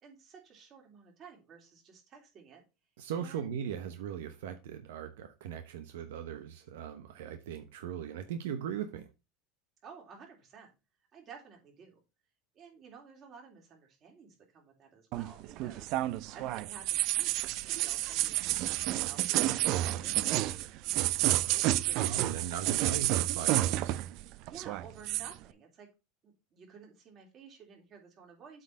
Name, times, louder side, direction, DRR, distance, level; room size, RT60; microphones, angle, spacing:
voice 1, 0.0-2.6 3.1-3.5 9.8-10.7 11.1-12.0 12.5-16.0 16.3-17.4 17.8-22.1 24.5-25.9 26.2-28.6, right 6 dB, 35° right, 3.1 m, -53 dB
voice 2, 3.0-9.1 21.9-24.0, right 8 dB, 90° right, 0.9 m, -39 dB
sound 1, 15.1-24.2 24.5-25.3, right 16 dB, 55° right, 0.4 m, -30 dB
8.0 x 3.9 x 5.2 m
supercardioid pair, 140°, 0 cm